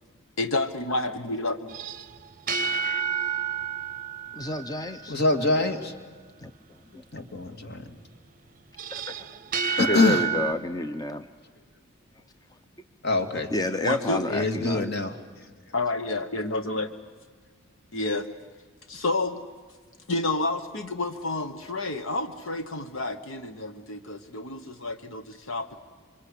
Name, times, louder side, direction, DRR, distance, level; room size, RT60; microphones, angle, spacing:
voice 1, 0.4-1.8 13.8-14.3 15.7-16.9 17.9-18.3 18.9-19.4 20.1-25.8, left 2 dB, 65° left, 8 dB, 1.2 m, -29 dB
sound 1, 1.7-5.2 8.8-10.5, right 6 dB, 40° right, 0.7 m, -30 dB
voice 2, 4.3-5.2 6.4-6.5 6.9-7.0 8.9-9.3 9.8-11.3 13.5-14.9, left 1 dB, 15° left, 8 dB, 0.7 m, -29 dB
voice 3, 5.1-5.9 7.1-7.8 9.8-10.2 13.0-13.5 14.3-15.1, left 3 dB, 50° left, 7 dB, 2.3 m, -24 dB
27.0 x 24.5 x 8.5 m, 1.5 s
head